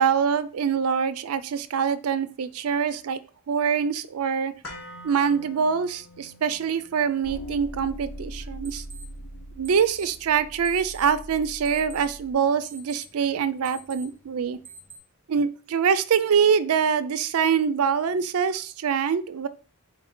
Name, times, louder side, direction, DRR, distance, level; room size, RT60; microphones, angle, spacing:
voice 1, 0.0-3.2 3.5-4.5 5.0-8.8 9.6-14.6 15.3-19.5, right 7 dB, 85° right, 14 dB, 0.4 m, -24 dB
sound 1, 4.6-12.7 13.0-13.1, left 1 dB, 65° left, 1.3 m, -49 dB
sound 2, 4.6-15.0, right 3 dB, 10° right, 0.5 m, -50 dB
sound 3, 7.2-12.3, equal, 90° left, 0.9 m, -40 dB
4.2 x 2.7 x 4.2 m, 0.37 s
head